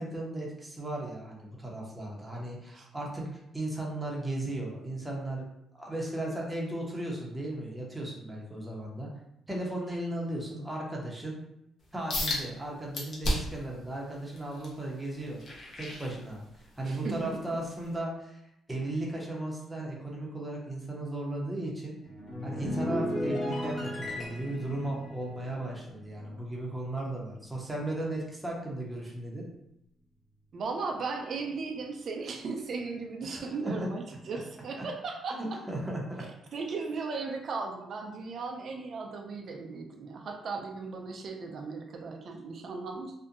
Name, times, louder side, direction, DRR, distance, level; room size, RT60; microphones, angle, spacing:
voice 1, 0.0-5.5 5.7-9.1 9.5-11.4 11.9-18.4 18.7-22.0 22.4-29.4 33.2-33.9 35.3-36.2, right 1 dB, 10° right, -3 dB, 0.7 m, -36 dB
sound 1, 12.1-12.4 12.9-13.6 14.1-16.7 17.2-17.4 18.0-18.1, left 1 dB, 50° left, 0.7 m, -33 dB
voice 2, 16.8-17.3 30.5-35.4 36.5-43.1, right 4 dB, 55° right, 2 dB, 0.4 m, -36 dB
sound 2, 22.0-26.7 26.9-27.3, left 1 dB, 30° left, 1.3 m, -35 dB
2.6 x 2.1 x 2.5 m, 0.81 s
cardioid pair, 90°, 0 cm